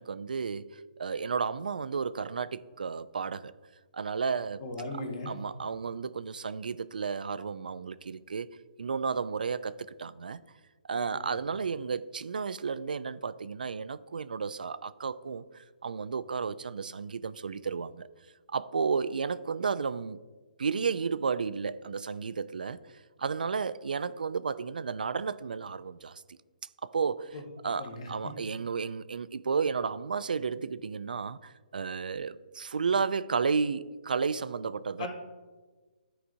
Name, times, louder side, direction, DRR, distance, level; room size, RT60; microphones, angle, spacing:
voice 1, 0.0-3.5 3.9-4.6 5.3-8.5 8.8-10.4 10.9-18.1 18.5-20.2 20.6-22.8 23.2-26.4 26.8-27.4 27.6-35.1, right 5 dB, 75° right, 0.3 m, -32 dB
voice 2, 4.6-5.3 11.1-11.2 27.3-27.4 27.8-28.3 35.0-35.1, left 2 dB, 50° left, 1.7 m, -38 dB
13.0 x 4.9 x 2.7 m
figure-of-eight pair, 135°, 5 cm